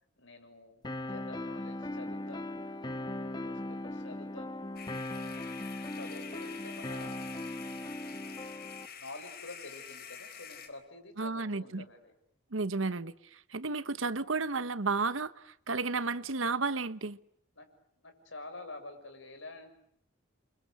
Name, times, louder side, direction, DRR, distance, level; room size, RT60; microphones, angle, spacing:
voice 1, 0.2-2.7 3.4-4.7 5.9-7.2 9.0-12.1 17.6-17.7 18.0-19.7, left 2 dB, 70° left, 6.7 m, -48 dB
sound 1, 0.8-8.9, left 1 dB, 20° left, 1.2 m, -39 dB
sound 2, 4.8-10.7, left 7 dB, 50° left, 4.3 m, -47 dB
voice 2, 11.2-11.8 12.5-17.2, right 4 dB, 80° right, 1.1 m, -33 dB
29.5 x 24.5 x 7.8 m
head